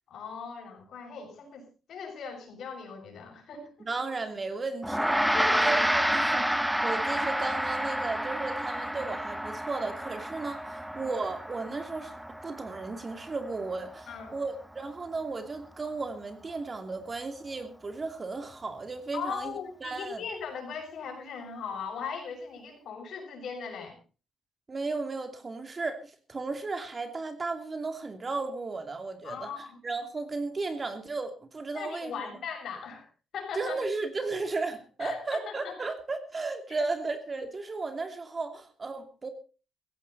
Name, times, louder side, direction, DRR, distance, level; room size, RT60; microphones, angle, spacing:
voice 1, 0.1-3.9 5.3-5.8 14.1-14.4 19.1-24.0 29.2-29.8 31.7-33.8 35.0-35.9, left 6 dB, 65° left, 3 dB, 6.9 m, -39 dB
voice 2, 3.8-5.2 5.6-12.1 12.4-19.5 19.8-20.2 24.7-29.5 29.8-32.1 33.5-39.3, right 3 dB, 30° right, 8 dB, 2.7 m, -34 dB
Gong, 4.8-14.5, equal, 5° right, 1.0 m, -30 dB
16.5 x 15.5 x 4.1 m, 0.35 s
cardioid pair, 90°, 0 cm